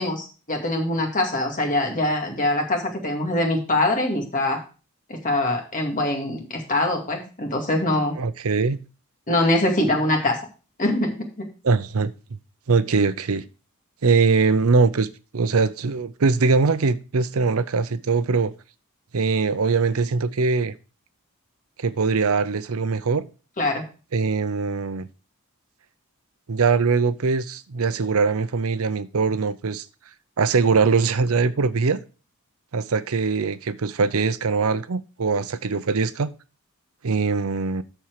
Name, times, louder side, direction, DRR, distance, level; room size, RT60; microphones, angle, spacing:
voice 1, 0.0-4.6 5.1-8.1 9.3-10.4 10.8-11.1 23.6-23.8, left 1 dB, 35° left, 2.3 m, -23 dB
voice 2, 8.1-8.8 11.6-12.1 12.7-13.4 14.0-15.1 15.3-18.5 19.1-20.7 21.8-23.2 24.1-25.1 26.5-29.8 30.4-32.0 32.7-36.3 37.0-37.8, right 4 dB, 70° right, 0.6 m, -22 dB
13.0 x 4.5 x 4.8 m
head